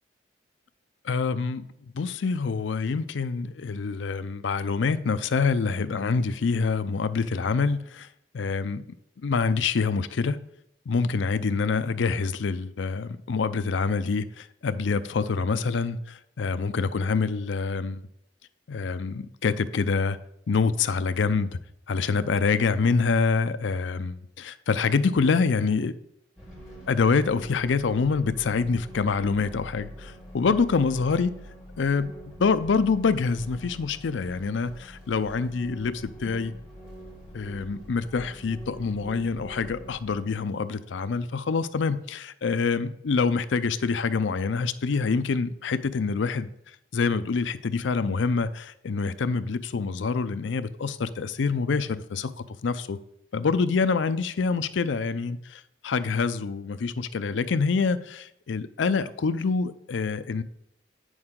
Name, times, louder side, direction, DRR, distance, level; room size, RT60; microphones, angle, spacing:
voice 1, 1.0-1.6 1.9-8.1 8.3-8.8 9.2-10.4 10.9-18.0 18.7-20.2 20.5-21.6 21.9-26.0 26.9-31.3 31.8-32.1 32.4-36.5 37.3-46.5 46.9-52.3 52.6-53.0 53.3-60.4, left 4 dB, 80° left, 0.5 m, -26 dB
sound 1, 26.4-40.2, equal, 5° right, 2.8 m, -44 dB
8.6 x 6.3 x 3.7 m
head